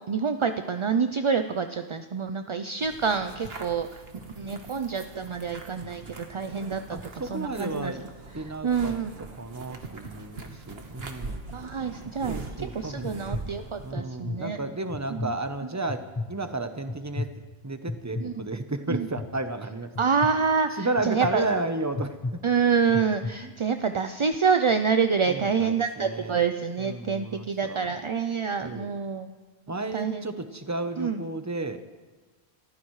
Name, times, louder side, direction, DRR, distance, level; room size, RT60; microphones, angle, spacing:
voice 1, 0.1-4.0 4.4-7.0 7.3-7.9 8.6-9.1 11.5-14.6 15.1-15.3 18.2-18.3 18.9-19.1 20.0-21.4 22.4-29.3 29.9-30.2 31.0-31.2, right 6 dB, 40° right, 8 dB, 0.5 m, -27 dB
sound 1, 2.8-13.9, right 3 dB, 75° right, 1.5 m, -42 dB
voice 2, 6.9-8.1 8.3-8.9 9.4-11.4 12.3-13.5 13.8-17.3 17.6-19.9 20.7-22.4 23.4-23.5 25.3-26.4 26.8-28.0 28.6-28.9 29.7-31.8, right 2 dB, 20° right, 8 dB, 0.8 m, -33 dB
sound 2, 12.0-12.4 13.0-13.4 13.9-14.4 14.9-15.3 15.9-16.3 16.9-17.3 17.9-18.2 18.9-19.3 20.0-20.3 21.0-21.3 21.9-22.3 22.9-23.3, left 3 dB, 25° left, 1.1 m, -32 dB
28.0 x 14.5 x 3.2 m, 1.3 s
omnidirectional pair, 1.0 m